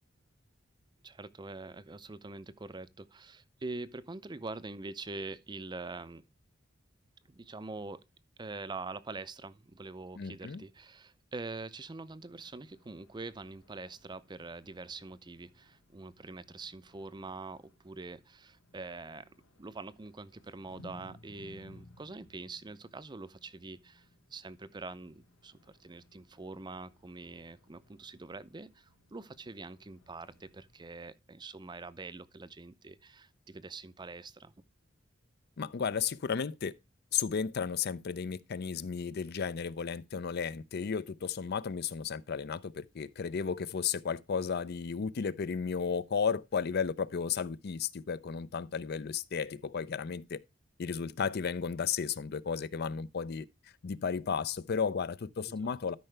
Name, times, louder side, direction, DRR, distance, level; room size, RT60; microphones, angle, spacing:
voice 1, 1.0-6.2 7.3-8.0 8.4-19.3 19.6-34.5 55.5-55.8, right 3 dB, 20° right, 0.5 m, -44 dB
voice 2, 10.2-10.6 35.6-36.7 37.1-50.4 50.8-53.5 53.8-55.9, left 6 dB, 55° left, 0.5 m, -34 dB
sound 1, 12.3-30.9, left 1 dB, 85° left, 1.3 m, -61 dB
12.5 x 5.5 x 3.3 m
head